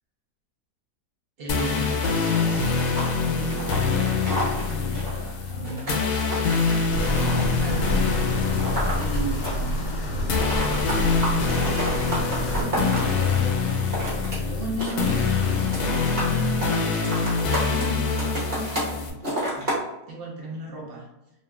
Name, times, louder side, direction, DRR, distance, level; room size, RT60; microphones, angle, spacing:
voice 1, 1.4-8.4 9.0-21.1, right 2 dB, 75° right, -2 dB, 0.5 m, -37 dB
sound 1, 1.5-19.1, left 5 dB, 75° left, 1.1 m, -25 dB
sound 2, 2.0-9.9 10.1-13.1 13.7-14.4 14.6-15.4 15.7-16.3 16.6-18.9 19.2-19.8, right 1 dB, 35° right, 1.0 m, -31 dB
sound 3, 6.9-12.6, equal, 60° left, 0.8 m, -29 dB
2.9 x 2.8 x 2.2 m, 0.92 s
omnidirectional pair, 1.7 m